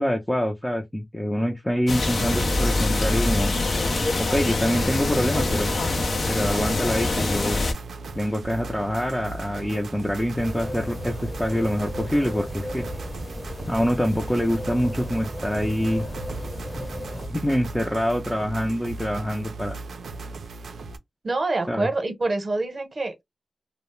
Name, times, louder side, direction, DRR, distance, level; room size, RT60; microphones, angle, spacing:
voice 1, 0.0-3.5 4.2-5.7 6.3-7.6 8.2-12.8 13.7-16.1 16.7-16.8 17.3-19.8 21.7-21.9, equal, 10° left, 0.5 m, -25 dB
sound 1, 1.9-7.7, left 2 dB, 65° left, 0.6 m, -24 dB
sound 2, 2.2-21.0, right 3 dB, 85° right, 0.4 m, -37 dB
sound 3, 10.4-17.3, left 1 dB, 30° left, 0.9 m, -35 dB
voice 2, 21.2-23.2, right 2 dB, 50° right, 0.8 m, -26 dB
2.2 x 2.0 x 3.0 m
cardioid pair, 70°, 0 cm